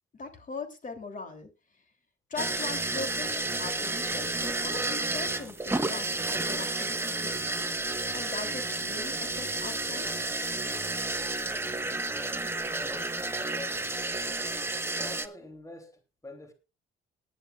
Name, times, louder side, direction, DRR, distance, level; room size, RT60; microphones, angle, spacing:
voice 1, 0.1-1.5 2.3-10.3, left 3 dB, 40° left, 3.2 m, -41 dB
sound 1, 2.4-15.3, right 2 dB, 10° right, 1.3 m, -31 dB
voice 2, 12.1-14.1 15.0-16.5, left 2 dB, 15° left, 3.0 m, -46 dB
19.0 x 11.0 x 2.5 m
cardioid pair, 90°, 20 cm